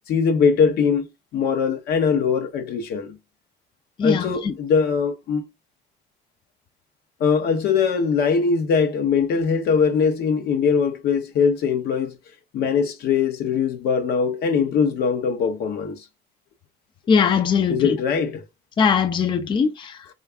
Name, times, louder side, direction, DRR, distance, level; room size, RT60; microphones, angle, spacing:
voice 1, 0.1-1.1 1.3-3.2 4.0-5.5 7.2-12.2 12.5-16.0 17.7-18.4, left 6 dB, 70° left, 0.9 m, -21 dB
voice 2, 4.0-4.5 17.1-18.0 18.8-20.1, left 6 dB, 30° left, 0.4 m, -21 dB
3.3 x 2.5 x 3.3 m
cardioid pair, 110°, 17 cm